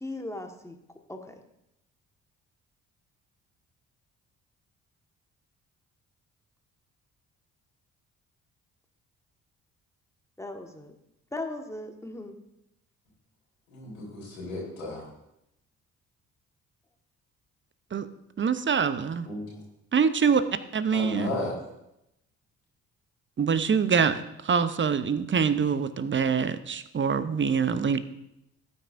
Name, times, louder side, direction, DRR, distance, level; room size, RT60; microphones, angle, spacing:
voice 1, 0.0-0.8 1.1-1.3 10.4-10.9 11.3-12.4, left 2 dB, 5° left, 4 dB, 1.6 m, -37 dB
voice 2, 13.7-15.0 19.3-19.6 20.9-21.6, left 2 dB, 85° left, -5 dB, 3.8 m, -34 dB
voice 3, 18.4-19.3 19.9-20.4 20.7-21.3 23.4-28.0, right 6 dB, 30° right, 12 dB, 0.8 m, -25 dB
17.0 x 9.0 x 2.6 m, 0.84 s
figure-of-eight pair, 45°, 39 cm